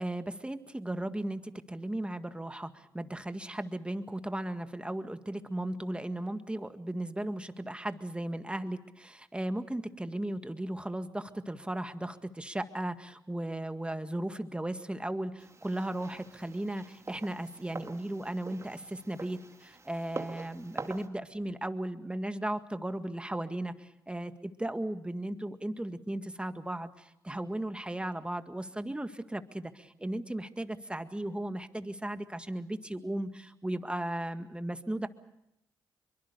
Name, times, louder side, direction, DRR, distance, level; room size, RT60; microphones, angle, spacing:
voice 1, 0.0-35.1, right 1 dB, 10° right, 9 dB, 1.9 m, -36 dB
sound 1, 15.4-21.1, right 3 dB, 35° right, 2.2 m, -45 dB
23.5 x 23.5 x 6.8 m, 0.82 s
supercardioid pair, 50°, 9 cm